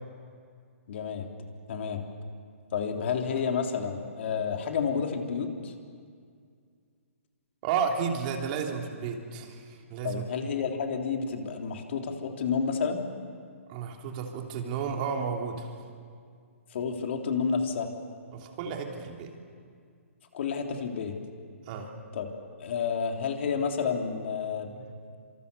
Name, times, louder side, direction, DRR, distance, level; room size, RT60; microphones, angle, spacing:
voice 1, 0.9-1.3 1.7-2.0 2.7-5.7 10.0-13.0 16.7-17.9 20.3-21.2 22.1-22.3 22.6-24.7, left 6 dB, 55° left, 3 dB, 3.2 m, -30 dB
voice 2, 7.6-10.2 13.7-15.7 18.3-19.3 21.6-21.9 24.7-25.0, right 6 dB, 35° right, 2 dB, 3.3 m, -32 dB
27.0 x 26.0 x 6.9 m, 2.2 s
hypercardioid pair, 140°, 8 cm